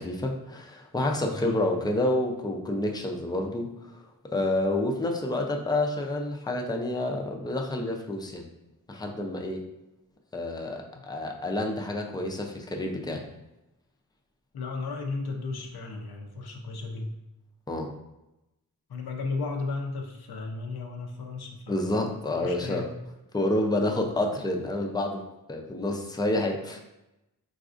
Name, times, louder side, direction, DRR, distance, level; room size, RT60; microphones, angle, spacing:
voice 1, 0.0-3.9 4.3-8.5 8.9-9.7 10.3-13.2 17.7-17.9 21.7-22.9 23.3-25.2 25.5-26.8, left 1 dB, 10° left, 2 dB, 0.4 m, -29 dB
voice 2, 14.5-17.1 18.9-22.9, left 3 dB, 90° left, 3 dB, 0.6 m, -35 dB
4.0 x 2.5 x 2.4 m, 0.94 s
wide cardioid pair, 65°, 37 cm